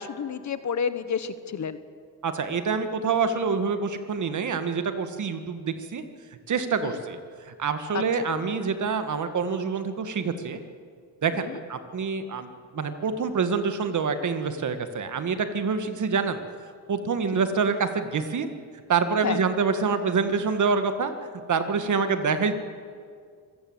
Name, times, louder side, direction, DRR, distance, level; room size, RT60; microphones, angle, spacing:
voice 1, 0.0-1.8 6.8-7.0 7.9-8.0 11.5-11.6 19.2-19.4, left 6 dB, 45° left, 13 dB, 1.2 m, -30 dB
voice 2, 2.2-6.0 6.5-10.6 11.2-16.4 16.9-18.5 18.9-21.1 21.5-22.5, right 5 dB, 50° right, 9 dB, 1.8 m, -26 dB
25.5 x 16.0 x 8.0 m, 2.1 s
cardioid pair, 110°, 38 cm